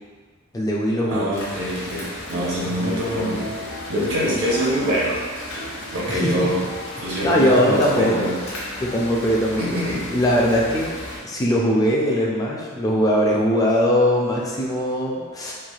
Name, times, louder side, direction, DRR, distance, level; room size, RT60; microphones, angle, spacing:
voice 1, 0.5-1.3 2.7-3.5 6.1-6.5 7.2-8.3 8.8-9.6 10.1-15.5, equal, 15° left, -3 dB, 0.3 m, -21 dB
voice 2, 1.1-3.4 3.7-5.2 5.9-6.6 7.0-8.4 9.6-10.1, equal, 75° right, -7 dB, 0.9 m, -24 dB
sound 1, 1.3-11.2, left 1 dB, 60° left, 0.7 m, -35 dB
sound 2, 3.0-9.2, left 1 dB, 40° right, 0.6 m, -40 dB
3.1 x 2.3 x 2.3 m, 1.5 s
head